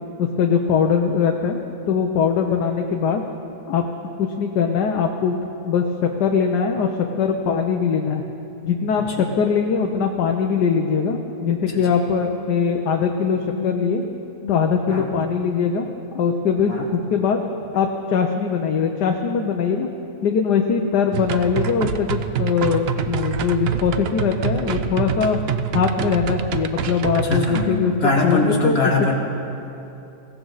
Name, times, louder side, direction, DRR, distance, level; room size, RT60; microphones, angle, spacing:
voice 1, 0.2-1.6 1.9-3.2 3.7-3.8 4.2-5.4 5.6-5.8 6.2-6.9 7.2-8.2 8.6-14.0 14.5-15.9 16.1-17.4 17.7-19.9 20.2-25.4 25.7-27.9 28.2-28.8, left 6 dB, 80° left, 2 dB, 1.4 m, -21 dB
voice 2, 11.7-12.4 12.6-12.7 13.6-14.6 14.9-15.1 16.7-16.9 27.1-29.2, left 2 dB, 35° left, -1 dB, 2.0 m, -24 dB
sound 1, 21.1-27.7, right 8 dB, 70° right, 0.6 m, -26 dB
22.0 x 16.0 x 4.0 m, 2.9 s
omnidirectional pair, 1.8 m